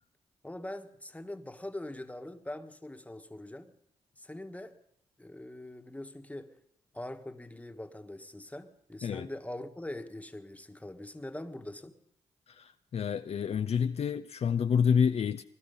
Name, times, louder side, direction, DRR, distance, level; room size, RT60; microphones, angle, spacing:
voice 1, 0.4-3.7 4.2-4.7 5.2-6.5 6.9-12.0, left 1 dB, 10° left, 1.5 m, -42 dB
voice 2, 12.5-15.4, left 7 dB, 60° left, 0.5 m, -28 dB
20.5 x 12.0 x 5.5 m
supercardioid pair, 50°, 12 cm